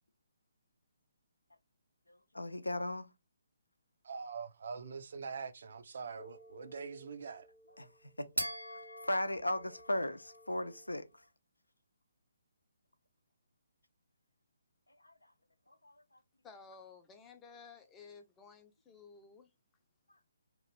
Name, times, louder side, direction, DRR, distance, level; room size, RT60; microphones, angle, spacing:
voice 1, 2.3-3.1 7.8-7.9 8.2-8.4 9.0-11.0 15.0-15.1, left 1 dB, 80° left, 0.5 m, -36 dB
voice 2, 4.0-7.5, right 5 dB, 50° right, 0.5 m, -43 dB
sound 1, 6.2-11.0, equal, 90° right, 0.8 m, -45 dB
voice 3, 16.4-19.5, left 5 dB, 10° left, 0.5 m, -55 dB
3.0 x 2.4 x 3.1 m
figure-of-eight pair, 135°, 0 cm